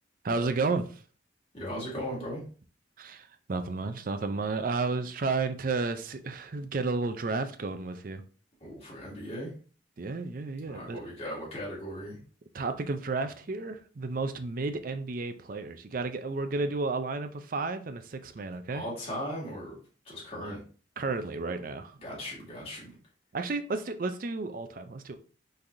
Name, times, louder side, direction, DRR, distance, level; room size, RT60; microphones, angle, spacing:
voice 1, 0.2-1.0 3.0-8.2 10.0-11.0 12.5-18.8 21.0-22.0 23.3-25.2, right 3 dB, 45° right, 0.5 m, -32 dB
voice 2, 1.5-2.4 8.6-9.5 10.6-12.2 18.7-19.8 20.0-20.6 22.0-23.0, equal, 30° left, 2.3 m, -38 dB
5.7 x 3.4 x 2.6 m
head